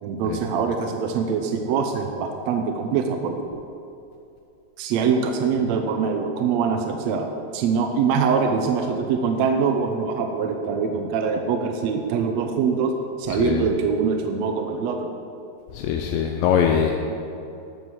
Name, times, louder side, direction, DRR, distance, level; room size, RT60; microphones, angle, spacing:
voice 1, 0.0-3.6 4.8-7.3 7.5-12.9 13.2-15.1, right 5 dB, 80° right, 4 dB, 1.5 m, -23 dB
voice 2, 13.3-13.7 15.7-17.0, left 8 dB, 90° left, 2 dB, 2.4 m, -22 dB
11.0 x 7.3 x 6.2 m, 2.7 s
omnidirectional pair, 4.0 m